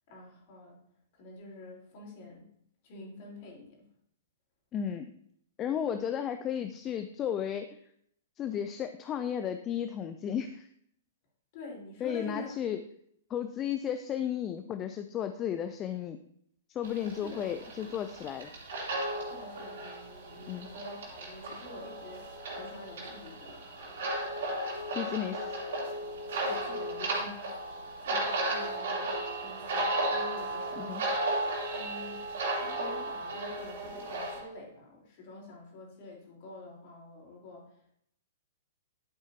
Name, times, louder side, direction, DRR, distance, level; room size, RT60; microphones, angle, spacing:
voice 1, 0.1-0.8 1.1-2.5 2.8-3.8 11.5-12.6 17.1-17.5 19.2-24.5 25.1-25.4 26.4-31.0 31.7-32.3 32.6-37.9, left 2 dB, 45° left, -2 dB, 3.8 m, -48 dB
voice 2, 4.7-5.1 5.6-7.8 8.4-10.7 12.0-12.8 13.3-16.2 16.7-18.5 20.5-20.7 24.9-25.6 30.8-31.0, left 9 dB, 25° left, 9 dB, 0.5 m, -34 dB
sound 1, 16.8-34.4, right 1 dB, 55° right, 3.0 m, -35 dB
11.5 x 8.0 x 2.8 m, 0.70 s
figure-of-eight pair, 110°, 0 cm